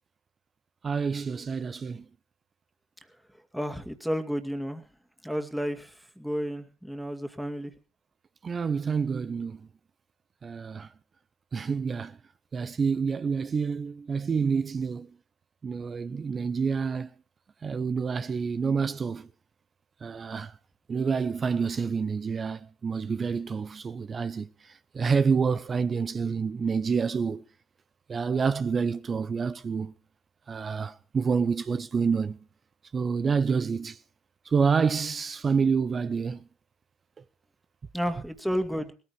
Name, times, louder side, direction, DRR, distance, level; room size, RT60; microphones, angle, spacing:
voice 1, 0.8-2.0 8.4-9.6 10.4-10.9 11.5-12.2 12.5-15.1 15.6-17.1 17.6-19.3 20.0-20.5 20.9-24.5 24.9-27.4 28.1-29.9 30.5-32.4 32.9-34.0 34.5-36.4, right 5 dB, 35° right, 0.8 m, -28 dB
voice 2, 3.5-4.8 5.2-5.9 6.2-7.7 37.9-38.9, equal, ahead, 2.4 m, -31 dB
20.5 x 14.5 x 3.2 m
figure-of-eight pair, 55°, 0 cm